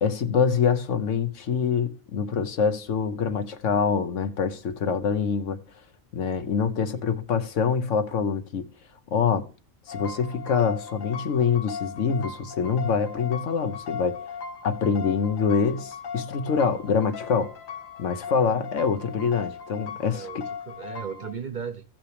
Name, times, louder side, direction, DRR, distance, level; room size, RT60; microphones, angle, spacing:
voice 1, 0.0-5.6 6.1-8.7 9.1-9.5 9.9-14.2 14.6-17.5 18.0-20.4, left 6 dB, 70° left, 1.2 m, -25 dB
sound 1, 9.9-21.3, left 6 dB, 90° left, 1.5 m, -38 dB
voice 2, 20.1-21.8, right 6 dB, 45° right, 0.8 m, -36 dB
15.5 x 5.9 x 3.3 m
omnidirectional pair, 1.3 m